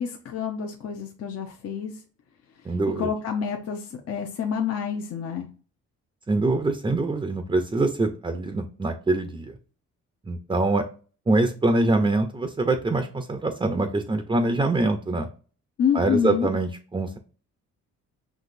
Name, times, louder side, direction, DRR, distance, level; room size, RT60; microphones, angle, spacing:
voice 1, 0.0-2.0 2.6-5.5 15.8-16.5, left 7 dB, 55° left, 2 dB, 0.8 m, -28 dB
voice 2, 2.7-3.1 6.3-9.5 10.3-10.8 11.3-15.3 15.9-17.2, right 2 dB, 15° right, 7 dB, 0.6 m, -24 dB
6.0 x 2.9 x 2.6 m, 0.38 s
cardioid pair, 90°, 30 cm